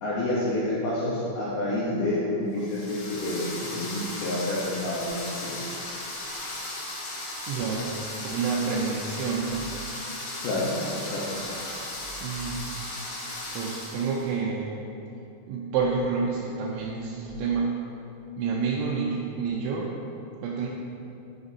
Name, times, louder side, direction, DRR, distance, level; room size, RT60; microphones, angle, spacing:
voice 1, 0.0-3.5 3.7-5.6 10.4-11.2, left 1 dB, 85° left, -8 dB, 1.9 m, -28 dB
sound 1, 2.6-14.3, left 1 dB, 65° left, 1.8 m, -36 dB
voice 2, 7.5-9.7 12.2-12.7 13.5-14.8 15.5-17.7 18.4-20.0 20.4-20.7, right 5 dB, 85° right, -4 dB, 2.9 m, -29 dB
11.0 x 5.2 x 2.7 m, 2.8 s
omnidirectional pair, 5.2 m